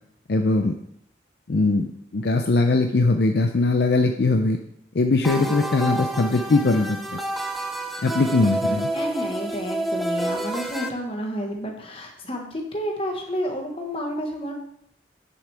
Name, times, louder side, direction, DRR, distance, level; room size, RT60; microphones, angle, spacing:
voice 1, 0.3-0.7 1.5-4.6 4.9-7.2 8.0-8.9, left 3 dB, 60° left, 5 dB, 0.5 m, -21 dB
sound 1, 5.2-10.9, right 1 dB, ahead, 0.6 m, -28 dB
voice 2, 8.5-14.5, equal, 30° left, 1 dB, 1.4 m, -30 dB
9.4 x 6.6 x 3.4 m, 0.73 s
head